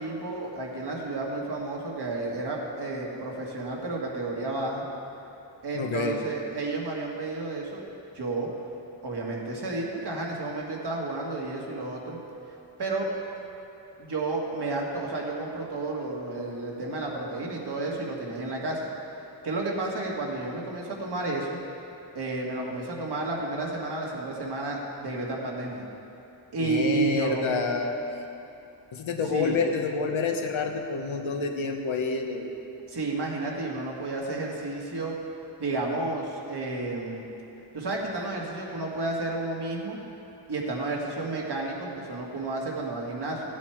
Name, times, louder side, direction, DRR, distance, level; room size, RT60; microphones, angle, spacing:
voice 1, 0.0-4.8 5.6-7.8 8.1-8.5 9.0-12.2 12.8-13.1 14.0-18.9 19.4-21.6 22.2-25.8 26.5-27.4 29.3-29.6 32.9-35.2 35.6-37.2 37.7-40.0 40.5-43.4, right 2 dB, 55° right, -2 dB, 1.9 m, -31 dB
voice 2, 5.7-6.2 26.6-27.9 28.9-32.5, left 4 dB, 80° left, 3 dB, 1.2 m, -28 dB
15.5 x 8.4 x 4.5 m, 2.9 s
wide cardioid pair, 150°, 46 cm